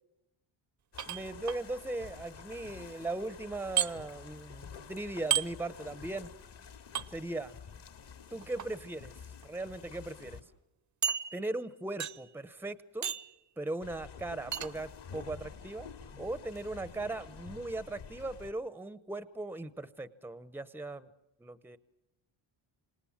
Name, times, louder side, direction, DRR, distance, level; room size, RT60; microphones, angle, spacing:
sound 1, 0.9-10.4 13.8-18.5, left 6 dB, 60° left, 2.3 m, -49 dB
sound 2, 1.0-1.6 3.8-3.9 5.3-5.5 6.9-7.1 8.4-8.7 9.4-9.5 9.9-10.0 11.0-11.6 12.0-12.3 13.0-13.4 14.5-14.7, right 8 dB, 40° right, 0.8 m, -32 dB
voice 1, 1.1-6.3 7.1-7.5 8.3-9.1 9.4-10.4 11.3-13.1 13.6-15.9 16.2-21.1 21.4-21.8, right 2 dB, 5° right, 15 dB, 0.8 m, -38 dB
27.0 x 19.5 x 7.2 m, 0.88 s
cardioid pair, 125°, 48 cm